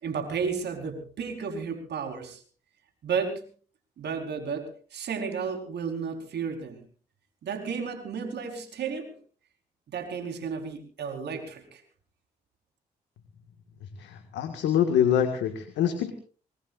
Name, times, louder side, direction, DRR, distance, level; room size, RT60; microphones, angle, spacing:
voice 1, 0.0-2.4 3.0-3.5 4.0-6.8 7.4-9.1 9.9-11.8, right 6 dB, 70° right, 5 dB, 4.5 m, -33 dB
voice 2, 14.0-16.1, left 9 dB, 85° left, 7 dB, 1.9 m, -25 dB
25.0 x 21.0 x 2.6 m, 0.40 s
supercardioid pair, 50°, 18 cm